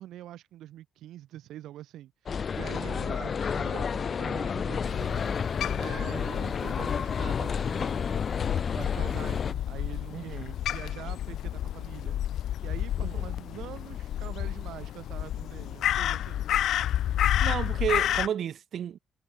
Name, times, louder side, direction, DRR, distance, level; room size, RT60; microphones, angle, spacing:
voice 1, 0.0-5.3 5.8-10.4 10.7-16.6, right 13 dB, 80° right, 4.1 m, -44 dB
sound 1, 2.3-9.5, left 6 dB, 45° left, 0.5 m, -30 dB
Crow, 4.8-18.3, left 11 dB, 75° left, 0.9 m, -31 dB
voice 2, 10.1-10.6 13.0-13.3 17.4-19.0, right 9 dB, 65° right, 5.3 m, -32 dB
cardioid pair, 90°, 0 cm